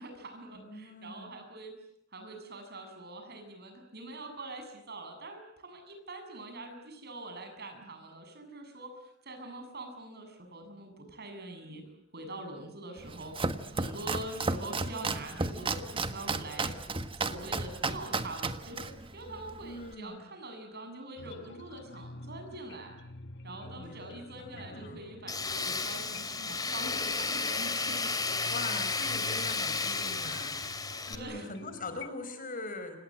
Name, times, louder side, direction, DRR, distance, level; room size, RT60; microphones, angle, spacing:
voice 1, 0.0-1.7 2.1-16.8 17.2-23.0 23.4-28.5 31.1-31.5, right 2 dB, 55° right, 6 dB, 7.4 m, -44 dB
voice 2, 0.5-1.4 19.6-20.2 24.4-25.0 28.5-30.8 31.1-33.0, left 2 dB, 45° left, 9 dB, 5.1 m, -42 dB
Domestic sounds home sounds, 13.0-19.9, right 3 dB, 25° right, 1.4 m, -34 dB
sound 1, 21.2-32.1, left 2 dB, 60° left, 1.4 m, -48 dB
Tools, 25.3-31.2, left 4 dB, 20° left, 2.8 m, -33 dB
29.5 x 26.5 x 7.6 m, 0.72 s
head